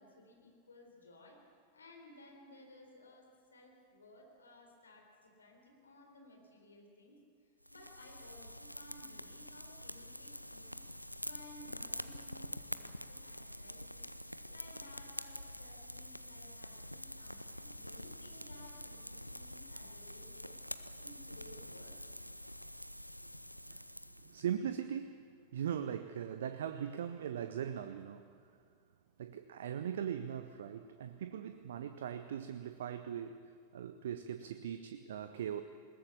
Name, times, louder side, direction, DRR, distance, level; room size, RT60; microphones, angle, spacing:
voice 1, 0.0-1.4 1.7-10.8 11.2-14.1 14.5-20.6 21.0-22.0, left 1 dB, 75° left, 2 dB, 4.0 m, -58 dB
sound 1, 7.6-24.5, equal, 90° left, 0.5 m, -47 dB
voice 2, 24.2-28.4 29.2-35.6, right 9 dB, 60° right, 10 dB, 0.7 m, -40 dB
20.5 x 19.0 x 7.1 m, 2.2 s
figure-of-eight pair, 90°, 0 cm